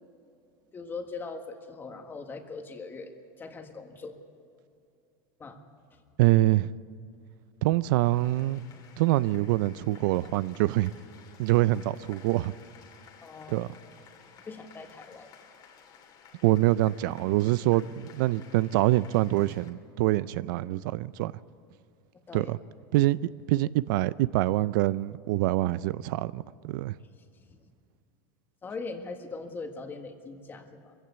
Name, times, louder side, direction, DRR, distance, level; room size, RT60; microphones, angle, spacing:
voice 1, 0.7-4.2 5.4-5.6 13.2-13.7 14.5-15.3 22.3-22.5 28.6-30.9, left 4 dB, 20° left, 1.7 m, -40 dB
voice 2, 6.2-6.7 7.6-8.6 9.0-10.9 11.4-12.5 13.5-13.7 16.4-21.3 22.3-22.6 22.9-23.2 23.5-26.9, right 17 dB, 70° right, 0.4 m, -25 dB
sound 1, 8.0-19.7, left 7 dB, 40° left, 2.4 m, -55 dB
22.5 x 15.5 x 8.1 m
supercardioid pair, 145°, 11 cm